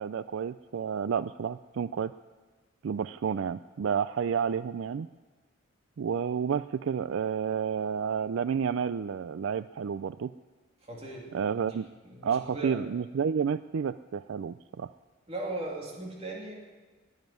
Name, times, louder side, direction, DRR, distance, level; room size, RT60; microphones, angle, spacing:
voice 1, 0.0-2.1 2.8-5.1 6.0-10.3 11.3-11.9 12.2-14.9, right 7 dB, 65° right, 14 dB, 0.4 m, -30 dB
voice 2, 10.8-11.4 11.6-11.8 12.1-12.8 15.3-16.5, right 2 dB, 30° right, -2 dB, 2.8 m, -38 dB
20.0 x 7.4 x 9.4 m, 1.3 s
head